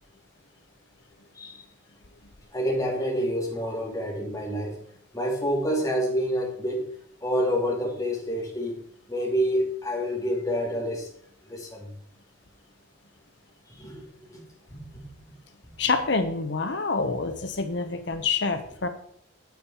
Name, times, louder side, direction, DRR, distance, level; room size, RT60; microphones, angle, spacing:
voice 1, 2.5-4.8 5.1-6.9 7.2-8.8 9.1-11.1 11.5-11.9 13.7-14.4 14.9-15.0, equal, 15° left, -3 dB, 2.9 m, -28 dB
voice 2, 15.8-18.9, left 4 dB, 60° left, 8 dB, 0.9 m, -27 dB
9.4 x 8.5 x 4.4 m, 0.64 s
head